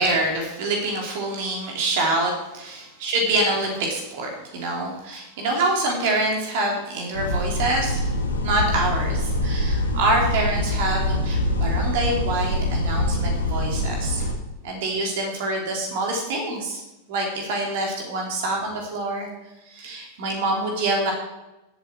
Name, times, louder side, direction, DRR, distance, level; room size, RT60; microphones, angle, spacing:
voice 1, 0.0-8.0 8.4-14.3 14.6-16.8 17.1-19.3 19.6-21.1, right 2 dB, 50° right, 0 dB, 3.0 m, -26 dB
sound 1, 7.1-14.3, left 1 dB, 80° left, 2.1 m, -24 dB
16.5 x 8.0 x 4.6 m, 0.98 s
figure-of-eight pair, 90°, 0 cm